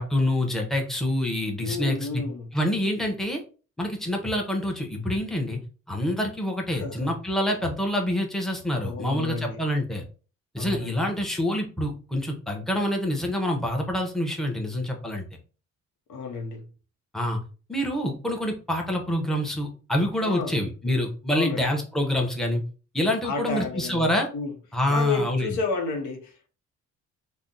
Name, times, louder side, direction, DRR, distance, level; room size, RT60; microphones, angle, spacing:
voice 1, 0.0-2.2 2.5-3.4 3.8-5.6 5.9-10.0 10.5-15.2 17.1-17.4 17.7-22.6 22.9-24.3 24.7-25.6, left 1 dB, ahead, 0.8 m, -26 dB
voice 2, 1.6-2.5 6.8-7.2 8.8-9.6 10.6-11.1 16.1-16.6 20.2-20.6 21.3-21.7 23.2-24.5 24.9-26.5, left 4 dB, 75° left, 0.8 m, -31 dB
2.6 x 2.1 x 3.7 m
cardioid pair, 90°, 30 cm